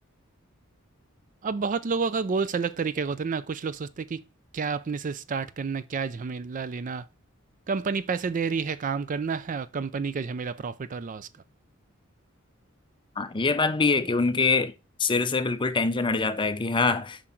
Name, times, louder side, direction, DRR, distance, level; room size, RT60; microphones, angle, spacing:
voice 1, 1.4-4.2 4.5-7.0 7.7-11.3, right 5 dB, 40° right, 0.4 m, -29 dB
voice 2, 13.2-14.7 15.0-17.2, left 4 dB, 25° left, 0.6 m, -24 dB
7.6 x 5.1 x 4.4 m
head